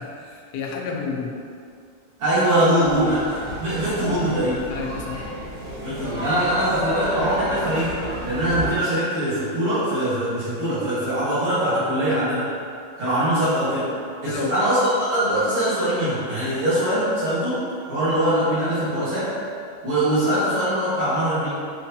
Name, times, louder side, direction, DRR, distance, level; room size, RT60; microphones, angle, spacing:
voice 1, 0.0-1.3 2.5-3.2 4.0-4.2 4.7-5.3 14.2-14.6, left 5 dB, 85° left, 0 dB, 0.8 m, -30 dB
voice 2, 2.2-3.2 3.6-4.6 5.8-7.9 8.2-12.5 13.0-13.9 14.2-19.4 19.8-21.5, right 1 dB, 80° right, -13 dB, 2.5 m, -22 dB
sound 1, 2.8-8.7, equal, 55° right, 1.3 m, -33 dB
6.1 x 2.2 x 2.7 m, 2.3 s
omnidirectional pair, 2.3 m